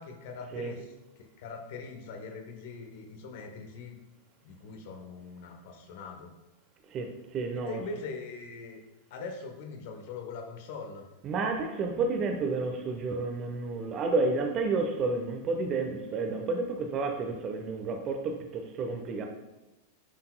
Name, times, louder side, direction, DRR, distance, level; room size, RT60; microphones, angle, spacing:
voice 1, 0.0-4.0 4.4-6.3 7.5-8.8 9.1-11.1, left 4 dB, 50° left, 4 dB, 1.1 m, -42 dB
voice 2, 6.9-7.8 11.2-19.3, right 3 dB, 30° right, 4 dB, 0.9 m, -31 dB
9.9 x 5.8 x 2.3 m, 1.0 s
figure-of-eight pair, 90°, 0 cm